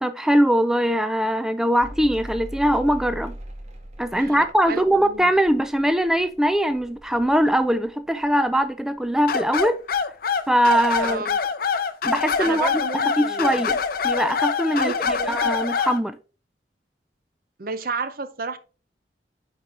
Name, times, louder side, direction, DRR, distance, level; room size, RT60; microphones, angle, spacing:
voice 1, 0.0-3.3 4.0-9.8 10.5-11.2 12.0-13.8 14.0-16.2, equal, 5° right, 0.4 m, -21 dB
Mechanical fan, 1.8-8.7 8.9-9.7, equal, 40° right, 1.8 m, -41 dB
voice 2, 4.1-5.3 11.0-11.4 12.4-13.7 14.7-15.5 17.6-18.6, right 4 dB, 55° right, 0.7 m, -32 dB
sound 1, 9.3-16.0, left 6 dB, 55° left, 0.7 m, -25 dB
9.3 x 4.4 x 3.4 m
head